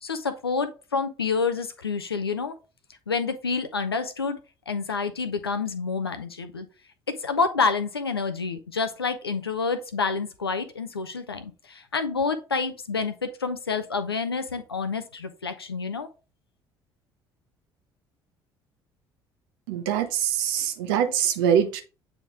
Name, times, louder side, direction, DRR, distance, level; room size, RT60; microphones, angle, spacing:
voice 1, 0.0-2.6 3.1-4.4 4.7-6.7 7.1-16.1, left 4 dB, 85° left, 0.6 m, -28 dB
voice 2, 19.7-21.8, right 9 dB, 65° right, 0.9 m, -24 dB
8.3 x 3.5 x 3.6 m
figure-of-eight pair, 55°, 13 cm